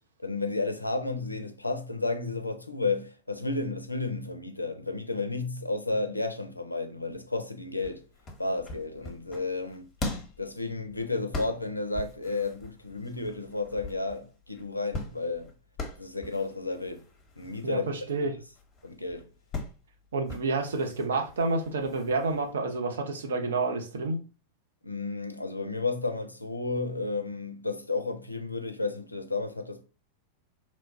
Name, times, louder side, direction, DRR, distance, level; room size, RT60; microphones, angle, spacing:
voice 1, 0.2-8.0 8.4-9.9 10.4-15.5 16.0-17.0 17.4-17.8 18.2-18.3 18.8-19.3 24.8-29.8, left 3 dB, 85° left, 0.4 m, -32 dB
sound 1, 7.8-22.5, left 2 dB, 25° left, 0.7 m, -41 dB
voice 2, 17.6-18.4 20.1-24.2, right 3 dB, 65° right, 0.5 m, -29 dB
2.9 x 2.2 x 2.6 m
figure-of-eight pair, 90°, 0 cm